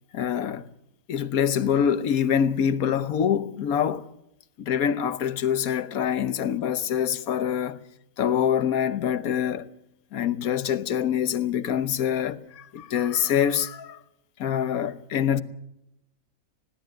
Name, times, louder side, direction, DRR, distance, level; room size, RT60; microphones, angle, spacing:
voice 1, 0.1-0.7 1.1-4.1 4.6-7.8 8.2-9.7 10.1-14.0 14.4-15.4, left 9 dB, 75° left, 1.4 m, -25 dB
20.5 x 16.5 x 7.8 m
omnidirectional pair, 1.6 m